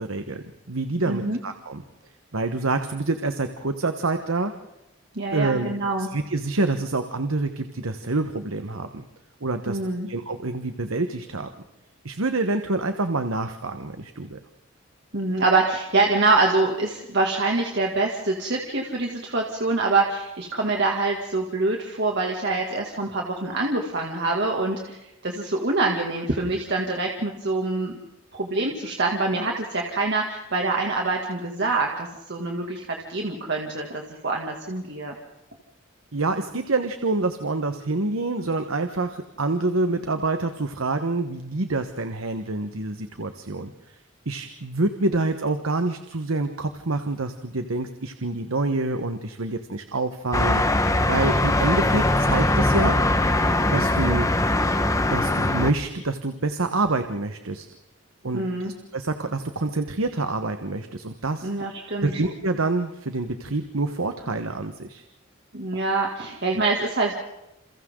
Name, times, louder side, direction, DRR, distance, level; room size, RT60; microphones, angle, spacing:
voice 1, 0.0-1.8 2.3-4.5 5.3-5.7 6.0-9.1 9.4-9.8 10.1-11.5 12.0-14.4 36.1-44.0 44.2-53.0 53.7-54.3 55.1-57.7 58.2-61.5 62.0-65.0, right 2 dB, 90° right, 8 dB, 1.3 m, -27 dB
voice 2, 1.1-1.4 5.1-6.1 9.7-10.1 15.1-27.9 28.3-35.1 58.3-58.7 61.4-62.1 65.5-67.1, right 3 dB, 55° right, 0 dB, 2.5 m, -25 dB
sound 1, 50.3-55.7, left 1 dB, 15° left, 1.3 m, -21 dB
29.0 x 28.5 x 3.9 m, 0.94 s
head